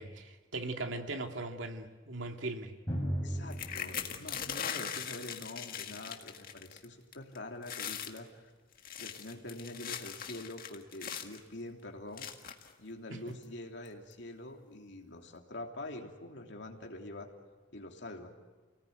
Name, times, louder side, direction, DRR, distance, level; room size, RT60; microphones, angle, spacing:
voice 1, 0.0-2.7 13.1-13.4, right 2 dB, 85° right, 4 dB, 2.4 m, -39 dB
Drum, 2.9-6.4, equal, 15° left, 6.8 m, -39 dB
voice 2, 3.2-8.5 9.0-12.3 12.8-17.3 17.7-18.3, left 1 dB, 65° left, 2 dB, 3.1 m, -45 dB
sound 1, 3.5-6.8 7.1-7.4 7.6-8.2 8.7-11.4 12.2-12.7 13.4-13.5 13.8-14.1, left 8 dB, 50° left, 1.9 m, -40 dB
29.5 x 19.0 x 9.5 m, 1.3 s
head